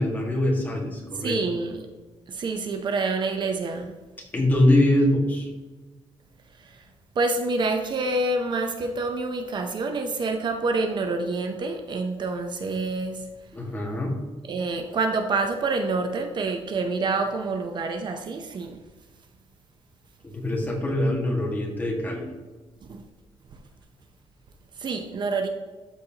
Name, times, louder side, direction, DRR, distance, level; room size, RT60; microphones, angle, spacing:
voice 1, 0.0-1.3 4.3-5.5 13.5-14.2 20.2-22.2, left 1 dB, 15° left, -1 dB, 1.7 m, -23 dB
voice 2, 1.1-1.9 2.3-3.9 6.6-6.9 7.2-13.3 14.5-18.9 22.8-23.0 24.8-25.5, right 3 dB, 45° right, 5 dB, 0.6 m, -27 dB
12.5 x 4.2 x 2.8 m, 1.2 s
cardioid pair, 135°, 10 cm